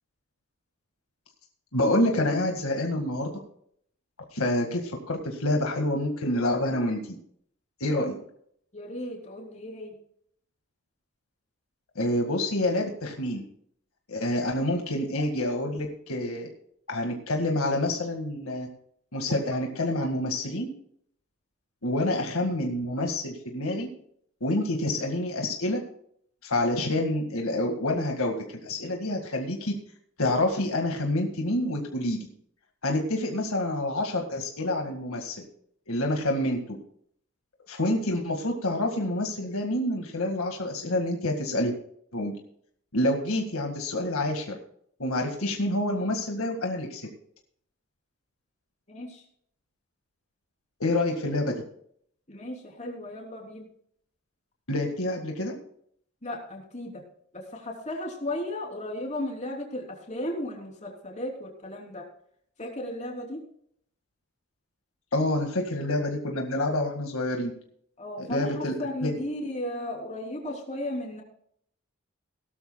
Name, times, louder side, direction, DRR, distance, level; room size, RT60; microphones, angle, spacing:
voice 1, 1.7-3.3 4.3-7.0 7.8-8.1 12.0-13.5 14.1-16.5 16.9-18.7 19.1-20.7 21.8-23.9 24.4-25.8 26.4-28.4 28.6-29.8 30.2-32.3 32.8-35.4 35.9-36.8 37.7-41.7 42.1-42.3 42.9-44.6 45.0-47.0 50.8-51.6 54.7-55.5 65.1-67.5 68.2-68.7 69.0-69.2, left 1 dB, 70° left, 2 dB, 1.9 m, -27 dB
voice 2, 8.7-9.9 48.9-49.2 52.3-53.7 56.2-57.0 57.3-62.0 62.6-63.4 68.0-71.2, left 1 dB, 30° left, 0 dB, 3.3 m, -35 dB
18.0 x 12.5 x 2.3 m, 0.66 s
head